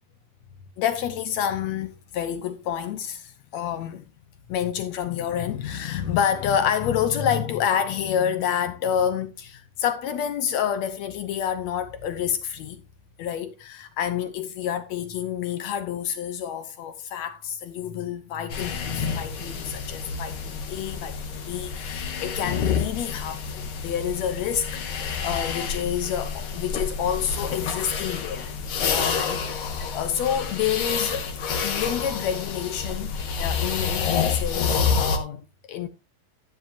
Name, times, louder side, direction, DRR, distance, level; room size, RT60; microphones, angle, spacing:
voice 1, 0.8-4.1 4.5-12.8 13.2-28.5 28.9-31.3 31.6-35.9, left 9 dB, 75° left, 1.7 m, -28 dB
sound 1, 18.5-35.2, left 6 dB, 55° left, 1.7 m, -28 dB
12.0 x 10.5 x 2.6 m
omnidirectional pair, 4.0 m